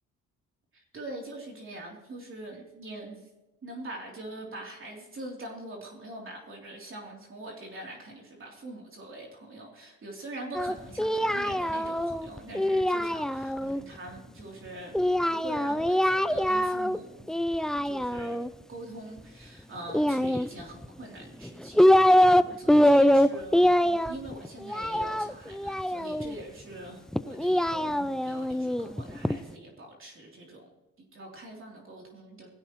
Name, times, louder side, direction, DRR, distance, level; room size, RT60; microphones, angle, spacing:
voice 1, 0.7-3.3 3.6-15.0 15.3-17.3 17.7-30.7 31.0-32.5, right 1 dB, 45° right, -1 dB, 3.4 m, -43 dB
Singing, 10.5-13.8 14.9-17.0 17.3-18.5 19.9-20.9 21.4-22.4 22.7-26.3 27.1-29.4, equal, ahead, 0.4 m, -24 dB
19.0 x 15.5 x 3.1 m, 1.0 s
cardioid pair, 90°, 30 cm